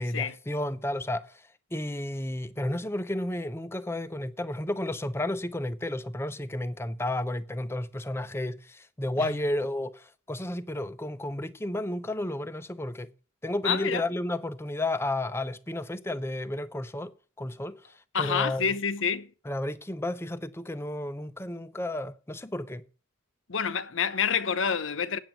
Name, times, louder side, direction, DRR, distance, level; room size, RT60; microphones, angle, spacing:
voice 1, 0.0-1.4 1.7-13.1 13.4-17.8 18.2-18.7 19.5-22.8, left 1 dB, 10° left, 0.6 m, -32 dB
voice 2, 13.6-14.0 18.1-19.3 23.5-25.2, left 6 dB, 70° left, 0.8 m, -28 dB
9.0 x 7.1 x 7.7 m
head